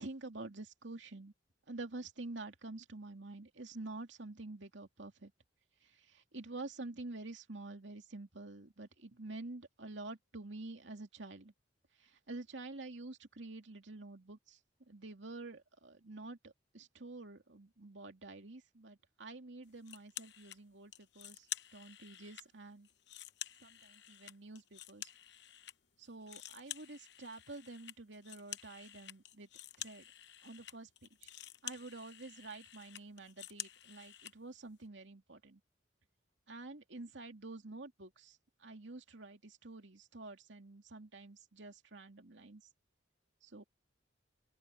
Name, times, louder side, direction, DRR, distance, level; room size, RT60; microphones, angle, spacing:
voice 1, 0.0-1.3 1.7-5.3 5.8-11.5 12.0-14.6 14.9-22.9 23.6-25.1 26.0-29.5 29.8-30.1 30.4-31.3 31.6-35.6 36.5-42.6 43.4-43.6, right 2 dB, 80° right, 2.5 m, -48 dB
sound 1, 19.8-20.6 20.9-22.5 22.8-25.7 26.0-34.3, left 12 dB, 65° left, 0.9 m, -49 dB
open air
head